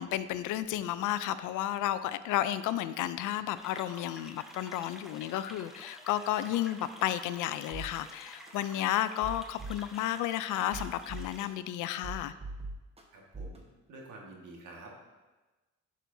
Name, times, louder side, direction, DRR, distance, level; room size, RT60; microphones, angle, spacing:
voice 1, 0.0-12.3, left 12 dB, 85° left, 14 dB, 0.5 m, -32 dB
sound 1, 3.5-11.5, equal, ahead, 1.0 m, -51 dB
sound 2, 7.7-7.9 8.5-8.6 9.1-10.0 10.6-11.7 12.0-13.0 13.3-13.6, right 2 dB, 20° right, 1.2 m, -40 dB
voice 2, 13.1-15.0, right 2 dB, 80° right, -1 dB, 1.7 m, -49 dB
11.0 x 6.2 x 2.7 m, 1.2 s
cardioid pair, 90°, 30 cm